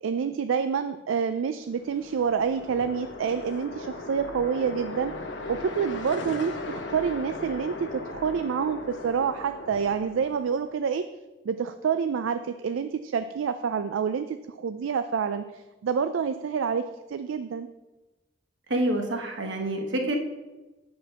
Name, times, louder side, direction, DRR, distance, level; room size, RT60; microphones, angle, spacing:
voice 1, 0.0-5.1 5.5-11.1 11.4-17.7, right 6 dB, 80° right, 10 dB, 0.4 m, -28 dB
sound 1, 1.7-10.8, left 2 dB, 60° left, 1.0 m, -38 dB
voice 2, 18.7-20.2, right 1 dB, 65° right, 3 dB, 1.2 m, -27 dB
8.0 x 5.1 x 5.6 m, 1.1 s
head